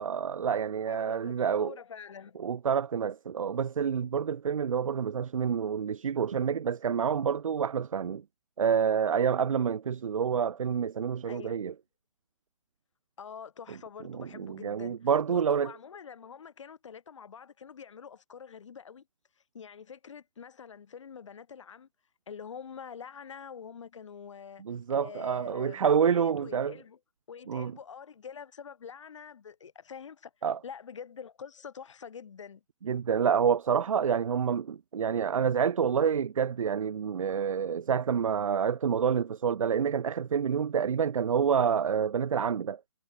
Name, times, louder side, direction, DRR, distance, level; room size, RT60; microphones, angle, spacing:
voice 1, 0.0-1.7 2.4-8.2 8.6-11.7 14.1-15.7 24.6-26.7 27.5-27.7 30.4-30.6 32.8-42.8, right 7 dB, 70° right, 0.6 m, -28 dB
voice 2, 0.9-2.4 11.3-11.6 13.2-19.1 19.5-21.9 22.3-24.6 24.9-27.0 27.3-30.3 30.6-32.6, left 7 dB, 60° left, 6.1 m, -46 dB
figure-of-eight pair, 140°, 18 cm